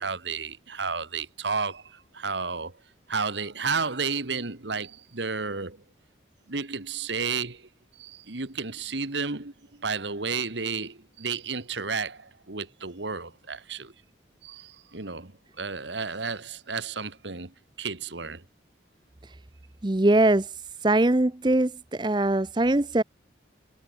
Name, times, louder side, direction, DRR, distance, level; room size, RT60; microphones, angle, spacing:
voice 1, 0.0-2.8 3.1-5.8 6.5-7.7 8.0-13.9 14.4-15.3 15.6-18.4, right 5 dB, 80° right, 1.8 m, -32 dB
voice 2, 19.8-20.5 20.8-23.0, right 2 dB, 25° right, 0.7 m, -22 dB
head